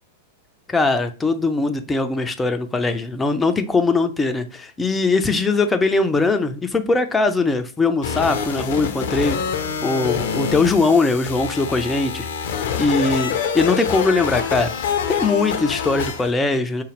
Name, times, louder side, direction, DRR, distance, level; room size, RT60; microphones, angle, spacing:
voice 1, 0.7-9.4 9.8-12.5 12.8-14.7 15.1-16.8, left 3 dB, 10° left, 0.5 m, -20 dB
sound 1, 8.0-16.3, left 7 dB, 55° left, 0.6 m, -26 dB
4.9 x 2.3 x 3.2 m
figure-of-eight pair, 95°, 0 cm